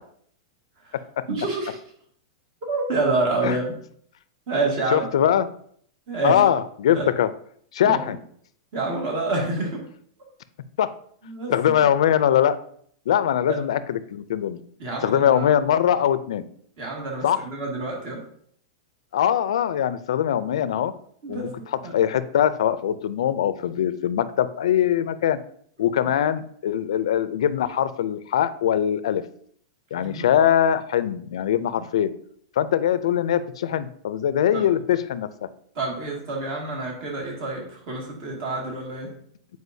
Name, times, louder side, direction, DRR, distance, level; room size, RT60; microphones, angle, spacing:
voice 1, 1.3-1.8 2.7-3.7 4.5-5.1 6.1-6.5 6.9-7.1 7.8-8.0 8.7-9.8 11.2-11.7 13.5-13.6 14.8-15.5 16.8-18.2 21.2-21.5 21.8-21.9 30.0-30.3 34.5-34.7 35.8-39.1, right 2 dB, 45° right, 0 dB, 2.0 m, -27 dB
voice 2, 4.9-5.5 6.2-7.3 7.7-8.2 10.8-10.9 11.5-12.6 13.1-14.6 15.0-16.4 17.2-17.4 19.1-20.9 21.3-21.5 21.9-25.4 25.8-29.2 29.9-32.1 32.6-35.5, left 10 dB, 85° left, 14 dB, 0.4 m, -22 dB
8.0 x 4.7 x 2.7 m, 0.62 s
supercardioid pair, 160°, 3 cm